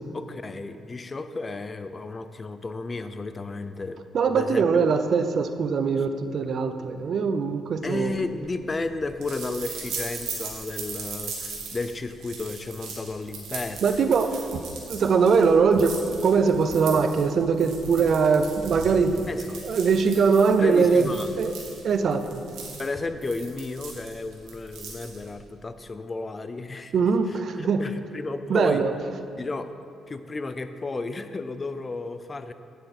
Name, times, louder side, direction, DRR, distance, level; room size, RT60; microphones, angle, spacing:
voice 1, 0.1-4.0 4.3-4.6 7.8-14.0 19.3-19.6 20.6-21.3 22.8-26.9 27.3-28.9 29.4-29.7 30.1-32.5, left 3 dB, 30° left, 10 dB, 0.5 m, -33 dB
voice 2, 4.1-8.1 13.8-19.3 19.6-21.5 21.8-22.4 26.9-27.8 28.5-28.9, right 5 dB, 55° right, 9 dB, 0.6 m, -22 dB
sound 1, 8.0-25.4, right 4 dB, 80° right, 1.8 m, -39 dB
9.1 x 7.6 x 4.3 m, 2.6 s
cardioid pair, 90°, 0 cm